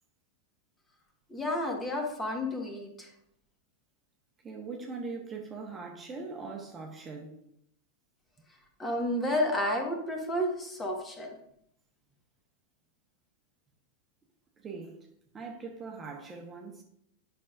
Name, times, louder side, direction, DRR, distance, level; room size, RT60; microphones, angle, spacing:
voice 1, 1.3-3.1 8.8-11.3, left 1 dB, 15° left, 1.6 m, -31 dB
voice 2, 4.4-7.3 14.6-15.1 15.3-16.8, right 4 dB, 20° right, 1.2 m, -41 dB
11.0 x 5.6 x 2.6 m
figure-of-eight pair, 90°, 0 cm